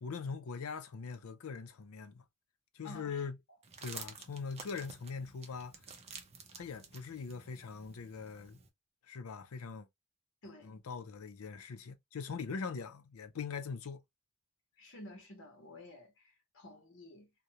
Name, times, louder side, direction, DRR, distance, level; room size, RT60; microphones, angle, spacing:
voice 1, 0.0-2.2 2.7-3.4 3.8-5.7 6.6-8.6 9.0-9.9 10.6-14.0, left 5 dB, 85° left, 0.5 m, -42 dB
voice 2, 2.8-3.2 10.4-10.8 14.8-17.3, left 1 dB, 60° left, 0.9 m, -52 dB
sound 1, 3.6-8.7, right 5 dB, 30° right, 0.5 m, -51 dB
2.4 x 2.1 x 2.7 m
head